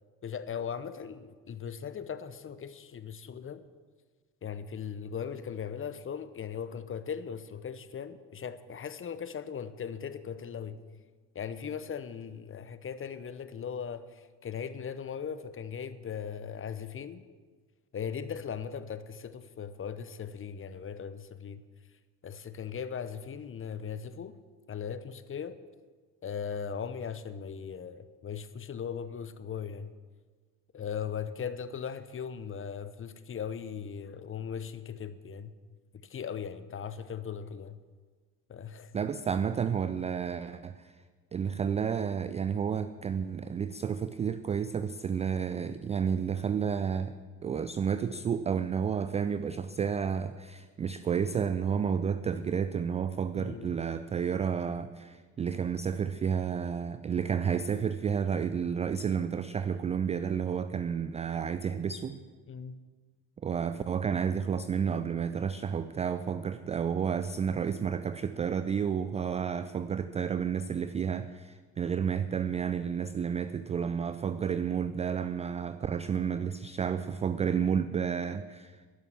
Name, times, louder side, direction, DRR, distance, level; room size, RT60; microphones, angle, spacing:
voice 1, 0.2-3.6 4.4-10.8 11.3-17.2 17.9-21.6 22.2-24.4 24.7-25.6 26.2-29.9 30.7-35.5 36.0-37.8 38.5-38.9 53.3-53.8 62.5-62.8, left 7 dB, 25° left, 0.8 m, -38 dB
voice 2, 38.9-40.9 41.3-47.1 47.4-62.2 63.4-78.8, right 7 dB, 15° right, 0.3 m, -31 dB
11.5 x 11.0 x 7.4 m
figure-of-eight pair, 50°, 47 cm